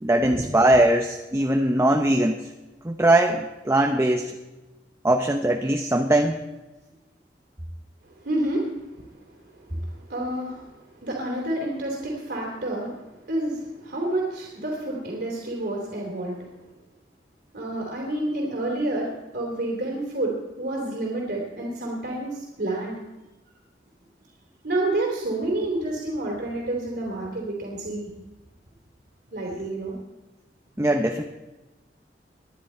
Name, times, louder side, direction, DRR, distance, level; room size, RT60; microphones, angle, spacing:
voice 1, 0.0-2.4 2.8-4.3 5.0-6.4 30.8-31.2, right 1 dB, 15° right, 4 dB, 0.8 m, -21 dB
voice 2, 8.2-10.7 11.0-16.5 17.5-23.0 24.6-28.1 29.3-29.9, right 1 dB, 65° right, -3 dB, 3.1 m, -29 dB
21.0 x 10.5 x 4.4 m, 1.1 s
head